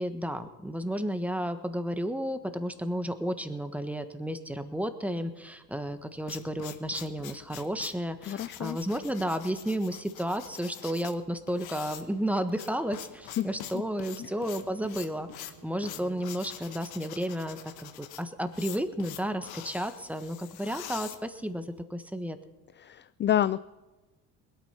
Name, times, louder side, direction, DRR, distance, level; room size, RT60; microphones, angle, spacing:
voice 1, 0.0-22.4, equal, 5° right, 9 dB, 1.4 m, -32 dB
sound 1, 5.9-21.8, left 12 dB, 70° left, 1.3 m, -45 dB
voice 2, 8.3-8.8 13.4-13.5 14.2-14.3 22.8-23.6, left 11 dB, 30° left, 15 dB, 0.4 m, -28 dB
Male speech man speaking, 11.8-16.8, right 4 dB, 60° right, 3.9 m, -55 dB
20.5 x 9.1 x 5.9 m, 1.1 s
supercardioid pair, 75°, 39 cm